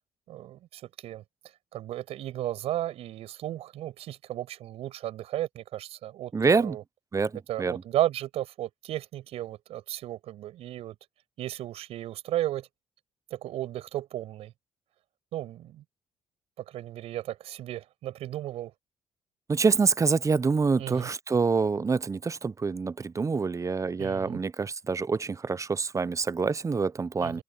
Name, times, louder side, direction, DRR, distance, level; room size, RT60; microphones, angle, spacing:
voice 1, 0.3-1.2 1.7-6.8 7.5-10.9 11.4-12.7 13.3-14.5 15.3-15.8 16.6-18.7 20.8-21.1 24.0-24.4 27.2-27.4, right 13 dB, 75° right, 6.2 m, -34 dB
voice 2, 6.3-6.8 7.1-7.7 19.5-27.4, right 4 dB, 30° right, 0.8 m, -26 dB
open air
supercardioid pair, 65°, 11 cm